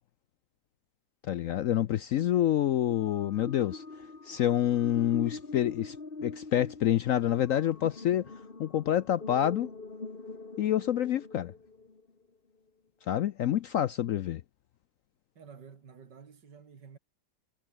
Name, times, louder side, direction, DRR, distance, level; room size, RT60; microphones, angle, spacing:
voice 1, 1.3-3.8 4.2-6.0 6.2-8.3 8.6-9.7 10.6-11.5 13.1-14.4, left 11 dB, 65° left, 0.8 m, -27 dB
sound 1, 2.7-12.1, left 3 dB, 30° left, 2.4 m, -44 dB
voice 2, 15.3-17.0, right 6 dB, 75° right, 2.8 m, -51 dB
omnidirectional pair, 1.9 m